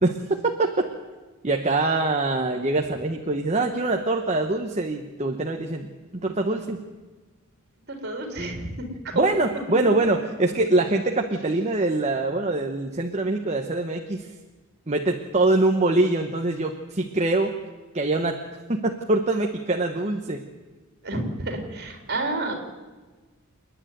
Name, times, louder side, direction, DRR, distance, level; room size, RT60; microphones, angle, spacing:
voice 1, 0.0-0.8 1.4-5.9 6.1-6.8 8.4-8.7 9.1-14.3 14.9-17.5 17.9-18.4 18.7-20.4, right 2 dB, 30° right, 3 dB, 1.1 m, -24 dB
voice 2, 7.9-9.4 21.0-22.5, right 2 dB, 45° right, 3 dB, 3.9 m, -30 dB
28.5 x 10.5 x 9.4 m, 1.3 s
head